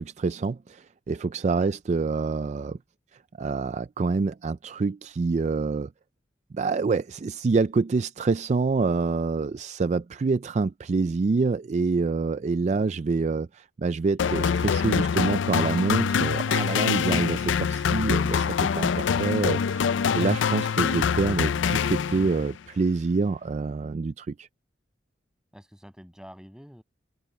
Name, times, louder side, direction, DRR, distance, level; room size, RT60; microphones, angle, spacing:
voice 1, 0.0-2.8 3.4-5.9 6.5-24.5, right 4 dB, 40° right, 0.3 m, -26 dB
sound 1, 14.2-22.5, left 6 dB, 80° left, 0.4 m, -25 dB
voice 2, 25.5-26.8, equal, 5° right, 6.3 m, -47 dB
open air
head